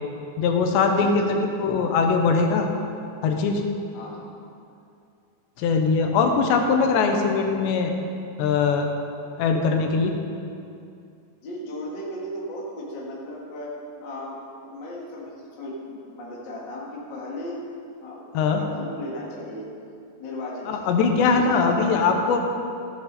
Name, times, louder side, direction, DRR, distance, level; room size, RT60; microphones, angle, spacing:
voice 1, 0.4-2.7 3.2-3.6 5.6-7.9 8.4-8.9 9.4-10.2 18.3-18.6 20.7-22.4, left 5 dB, 85° left, 3 dB, 3.1 m, -21 dB
voice 2, 1.0-1.3 3.9-4.3 11.4-13.7 14.0-17.6 18.0-19.7 20.2-22.1, left 1 dB, 40° left, -4 dB, 1.7 m, -36 dB
14.5 x 9.6 x 4.1 m, 2.5 s
omnidirectional pair, 4.9 m